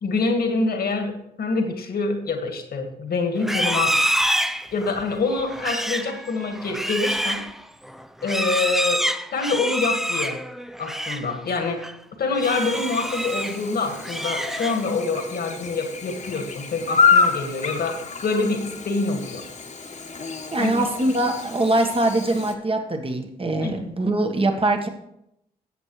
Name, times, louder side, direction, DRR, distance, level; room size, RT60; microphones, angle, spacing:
voice 1, 0.0-4.0 4.7-7.4 8.2-9.0 9.3-10.4 10.8-11.9 12.2-19.5 20.6-20.7 23.6-23.8, left 3 dB, 65° left, 4 dB, 1.9 m, -26 dB
Livestock farm animals working animals, 3.4-11.3 11.6-11.9 12.3-13.6 13.9-15.0, right 1 dB, ahead, 0.5 m, -27 dB
Chirp tweet / Buzz, 12.4-22.5, left 5 dB, 45° left, 1.4 m, -27 dB
voice 2, 20.5-24.9, right 2 dB, 30° right, 5 dB, 1.5 m, -23 dB
14.0 x 7.8 x 3.2 m, 0.78 s
supercardioid pair, 45°, 17 cm